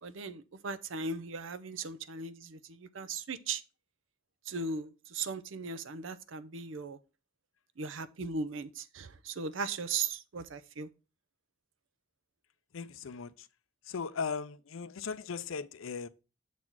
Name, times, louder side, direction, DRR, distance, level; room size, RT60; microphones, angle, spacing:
voice 1, 0.0-3.6 4.5-7.0 7.8-10.9, right 4 dB, 80° right, 0.6 m, -38 dB
voice 2, 12.7-13.5 13.9-16.1, left 5 dB, 90° left, 0.5 m, -38 dB
7.4 x 4.2 x 4.5 m
head